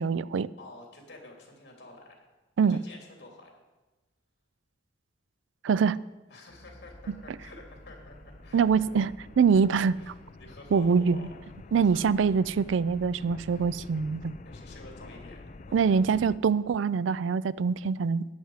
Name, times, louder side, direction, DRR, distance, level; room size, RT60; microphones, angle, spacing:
voice 1, 0.0-0.5 2.6-2.8 5.6-6.0 8.5-9.1 9.4-10.0 10.7-11.3 11.7-14.3 15.7-18.3, right 6 dB, 85° right, 18 dB, 0.4 m, -24 dB
voice 2, 0.6-2.1 2.7-3.5 6.3-8.9 10.0-10.1 10.4-12.2 13.5-13.6 14.4-16.1, left 2 dB, 60° left, 0 dB, 3.0 m, -49 dB
sound 1, 6.5-10.6, equal, 10° left, 2.7 m, -53 dB
sound 2, 6.9-16.4, left 2 dB, 40° left, 0.5 m, -48 dB
13.5 x 9.6 x 4.8 m, 1.1 s
head